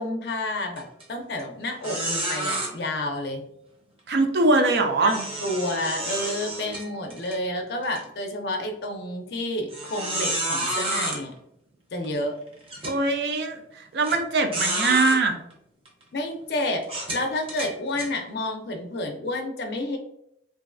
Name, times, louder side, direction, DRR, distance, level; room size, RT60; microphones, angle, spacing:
voice 1, 0.0-3.4 5.0-11.3 11.9-12.3 16.1-16.9 17.1-20.0, left 1 dB, 60° left, 3 dB, 0.5 m, -30 dB
sound 1, 0.8-1.0 1.4-1.5 1.8-2.7 5.0-7.4 7.8-8.0 8.6-8.7 9.7-11.2 12.0-12.1 12.7-13.0 14.0-14.2 14.5-15.2 15.9-16.0 16.8-18.1, right 1 dB, 30° right, 0.7 m, -30 dB
voice 2, 4.1-5.2 12.8-15.4, right 3 dB, 65° right, 5 dB, 0.4 m, -22 dB
3.0 x 2.5 x 2.5 m, 0.76 s
head